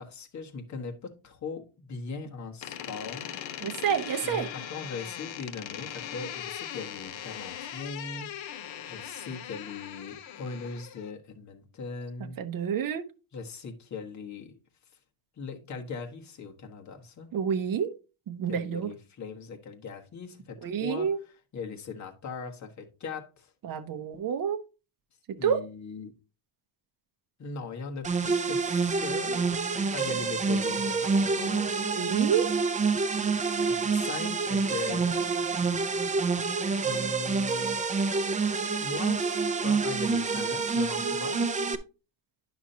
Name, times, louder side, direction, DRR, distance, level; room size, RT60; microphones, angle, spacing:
voice 1, 0.0-3.6 4.2-8.3 8.9-12.4 13.3-14.6 15.4-17.3 18.5-21.1 21.5-23.5 25.4-26.1 27.4-29.5 29.9-31.7 33.6-35.1 36.8-37.8 38.8-39.3 39.6-41.6, left 4 dB, 40° left, 1.3 m, -39 dB
Door, 2.6-11.1, left 10 dB, 75° left, 1.1 m, -40 dB
voice 2, 3.6-4.5 12.4-13.0 17.3-17.9 18.3-18.9 20.6-21.2 23.6-24.6 25.3-25.6 32.0-32.5, right 8 dB, 45° right, 0.8 m, -28 dB
sound 1, 28.0-41.8, right 4 dB, 20° right, 0.4 m, -27 dB
10.0 x 6.1 x 2.7 m
cardioid pair, 160°, 46 cm